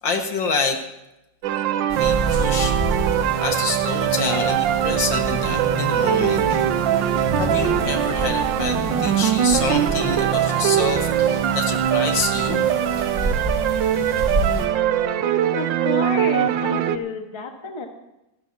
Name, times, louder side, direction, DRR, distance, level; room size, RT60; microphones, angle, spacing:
voice 1, 0.0-0.8 2.0-2.8 3.4-6.4 7.4-13.1, left 4 dB, 70° left, 3 dB, 2.4 m, -27 dB
sound 1, 1.4-17.0, right 10 dB, 75° right, 1.4 m, -22 dB
sound 2, 1.9-14.7, right 1 dB, 40° right, 3.2 m, -29 dB
voice 2, 15.5-17.9, left 3 dB, 15° left, 3 dB, 1.3 m, -30 dB
27.0 x 13.0 x 2.8 m, 0.92 s
omnidirectional pair, 2.1 m